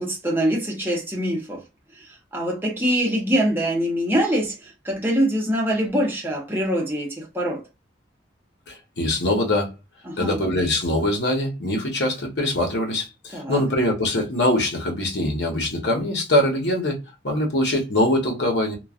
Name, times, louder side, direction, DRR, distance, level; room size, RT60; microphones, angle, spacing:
voice 1, 0.0-1.6 1.9-7.6 10.0-10.4 13.3-13.6, equal, 10° right, 0.8 m, -24 dB
voice 2, 8.7-9.7 10.2-17.0 17.2-18.8, left 1 dB, 70° left, 0.9 m, -23 dB
3.0 x 2.2 x 2.4 m
head